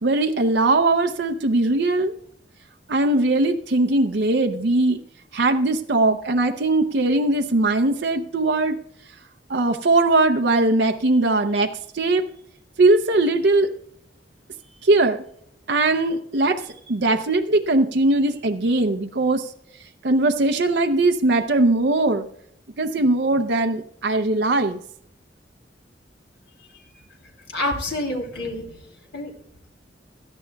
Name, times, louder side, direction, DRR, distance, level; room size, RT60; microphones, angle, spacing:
voice 1, 0.0-2.1 2.9-5.0 5.3-8.8 9.5-12.2 12.8-13.7 14.8-15.2 15.7-19.5 20.0-22.3 22.8-24.8, right 2 dB, 65° right, 7 dB, 0.7 m, -20 dB
voice 2, 27.5-28.8 29.1-29.3, left 1 dB, 75° left, 2 dB, 3.0 m, -27 dB
17.0 x 13.0 x 2.3 m, 0.68 s
head